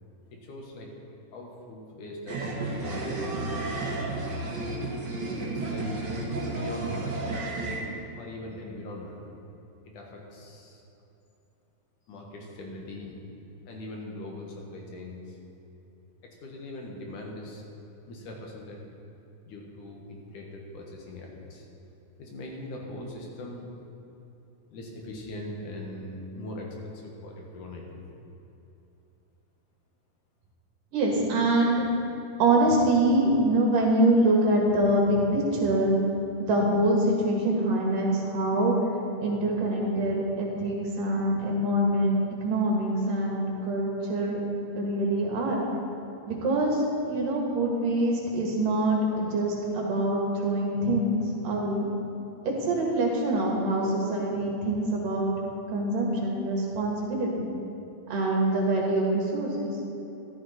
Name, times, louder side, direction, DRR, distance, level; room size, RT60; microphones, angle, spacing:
voice 1, 0.3-0.9 1.3-4.0 5.4-6.0 6.5-7.3 8.2-9.2 9.9-10.8 12.1-13.2 13.7-15.4 16.2-17.6 18.1-18.8 19.4-21.7 22.2-23.7 24.7-28.0, left 1 dB, 65° left, 0 dB, 3.1 m, -41 dB
sound 1, 2.3-7.8, right 2 dB, 40° right, 1.7 m, -32 dB
voice 2, 30.9-31.8 32.4-36.0 36.4-38.7 39.2-44.4 44.8-45.6 46.3-51.9 52.4-55.3 55.7-57.5 58.1-59.7, right 1 dB, 75° right, -2 dB, 3.4 m, -25 dB
13.5 x 13.0 x 4.3 m, 3.0 s
omnidirectional pair, 3.9 m